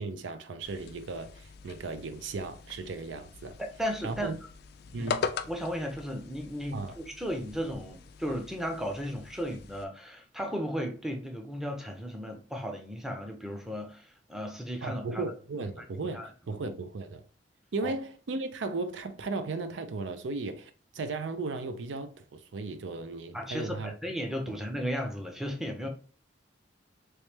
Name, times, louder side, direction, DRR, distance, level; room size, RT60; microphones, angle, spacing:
voice 1, 0.0-3.6 4.0-4.4 4.9-5.3 6.7-7.0 14.8-17.2 17.7-23.9 24.5-24.6, right 3 dB, 85° right, 0.5 m, -36 dB
sound 1, 0.6-9.8, left 6 dB, 60° left, 0.3 m, -41 dB
voice 2, 3.6-4.3 4.9-5.1 5.5-15.2 16.1-16.3 17.8-17.9 23.3-25.9, equal, ahead, 0.6 m, -35 dB
3.2 x 3.1 x 3.2 m
head